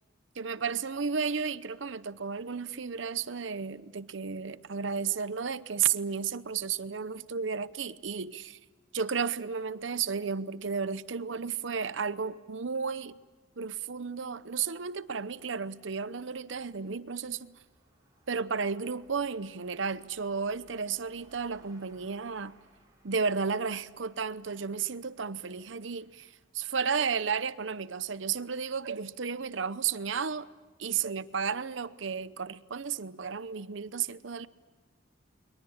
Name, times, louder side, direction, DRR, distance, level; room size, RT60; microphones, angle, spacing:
voice 1, 0.4-8.6 8.9-13.2 13.6-17.6 18.3-22.6 23.0-30.5 30.8-34.5, right 6 dB, 70° right, 0.8 m, -33 dB
sound 1, 16.0-26.5, right 1 dB, 20° right, 6.8 m, -65 dB
30.0 x 22.0 x 8.7 m
head